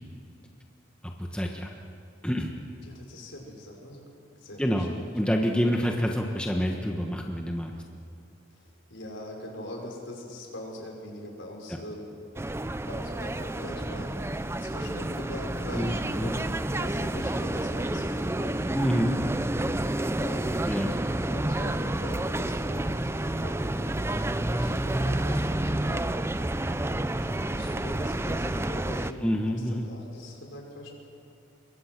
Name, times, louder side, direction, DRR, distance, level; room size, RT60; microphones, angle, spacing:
voice 1, 1.2-1.7 2.2-2.5 4.6-7.7 15.7-16.4 18.7-19.2 20.7-20.9 29.2-29.9, equal, 5° left, 1 dB, 1.3 m, -27 dB
voice 2, 2.8-4.1 4.4-4.9 5.3-5.8 8.5-12.2 12.9-18.8 19.5-19.6 19.8-20.4 20.9-21.0 21.3-26.1 26.7-30.9, left 1 dB, 65° left, 0 dB, 5.5 m, -42 dB
sound 1, 12.4-29.1, right 1 dB, 10° right, 0.5 m, -29 dB
26.0 x 23.0 x 6.1 m, 2.7 s
head